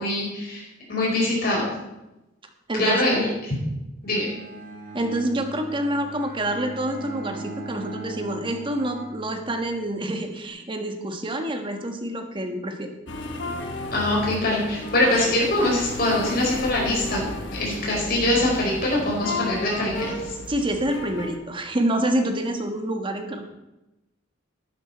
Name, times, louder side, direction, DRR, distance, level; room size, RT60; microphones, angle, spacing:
voice 1, 0.0-1.6 2.8-3.6 4.0-4.3 13.9-17.2 17.5-20.2, left 1 dB, 55° left, -3 dB, 4.7 m, -23 dB
voice 2, 2.7-3.1 4.9-12.9 20.5-23.4, right 1 dB, 25° right, 5 dB, 1.3 m, -27 dB
Bowed string instrument, 4.0-9.8, right 2 dB, 50° right, 3.5 m, -39 dB
sound 1, 13.1-21.4, left 2 dB, 70° left, 1.2 m, -33 dB
11.5 x 9.9 x 4.3 m, 0.97 s
head